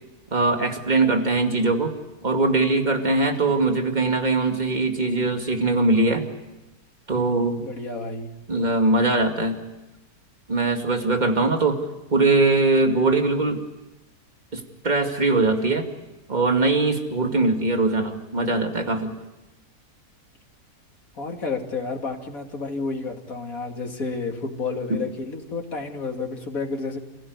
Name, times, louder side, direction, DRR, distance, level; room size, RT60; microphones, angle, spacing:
voice 1, 0.3-1.9 2.2-6.2 7.1-7.7 8.5-9.6 10.5-11.8 12.1-13.6 14.5-15.9 16.3-19.1 24.9-25.0, right 3 dB, 30° right, 4 dB, 2.5 m, -21 dB
voice 2, 7.6-8.3 21.1-27.0, left 4 dB, 60° left, 2 dB, 3.0 m, -31 dB
29.0 x 16.0 x 9.6 m, 1.0 s
omnidirectional pair, 1.6 m